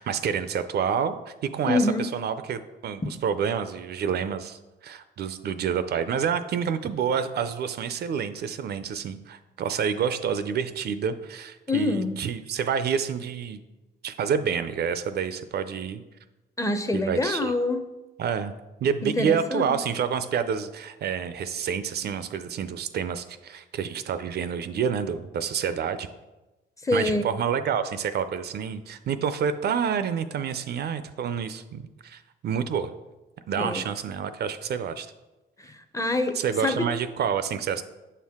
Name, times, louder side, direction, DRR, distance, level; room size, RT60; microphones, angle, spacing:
voice 1, 0.0-13.6 14.0-16.0 16.9-17.5 18.2-18.5 18.8-26.1 26.9-32.9 33.5-35.1 36.4-37.8, right 7 dB, 55° right, 12 dB, 0.4 m, -28 dB
voice 2, 1.7-2.1 11.7-12.1 16.6-17.8 19.0-19.7 26.8-27.3 33.6-33.8 35.6-36.4 36.6-36.9, left 2 dB, 15° left, 8 dB, 0.5 m, -25 dB
6.8 x 4.5 x 3.6 m, 1.1 s
cardioid pair, 90°, 20 cm